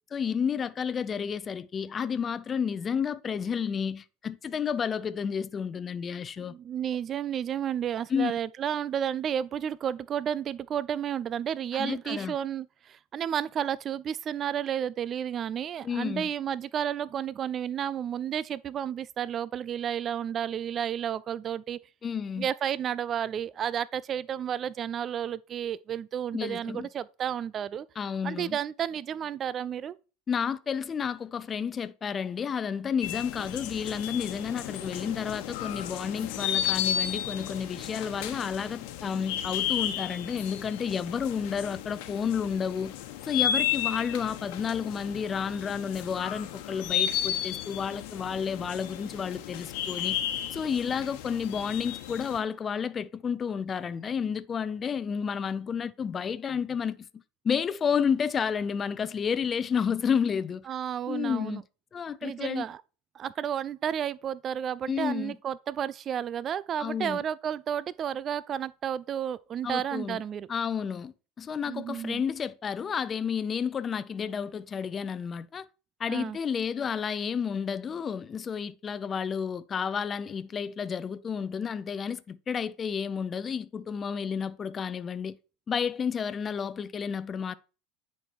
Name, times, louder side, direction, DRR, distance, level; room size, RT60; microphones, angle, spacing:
voice 1, 0.1-6.5 8.1-8.3 11.8-12.4 15.8-16.3 22.0-22.5 26.3-26.9 28.0-28.6 30.3-42.9 43.2-50.2 50.5-57.0 57.4-60.7 61.1-61.6 61.9-62.7 64.9-65.4 66.8-67.2 69.6-70.2 70.5-75.6 76.0-85.4 85.7-87.5, left 7 dB, 25° left, 0.6 m, -31 dB
voice 2, 6.4-21.8 22.4-27.9 28.2-30.0 60.7-61.6 62.2-62.8 63.1-70.5 71.6-72.2 76.1-76.4, right 9 dB, 35° right, 0.3 m, -32 dB
sound 1, 33.0-52.4, left 10 dB, 70° left, 1.1 m, -33 dB
9.9 x 4.6 x 4.5 m
supercardioid pair, 115°, 0 cm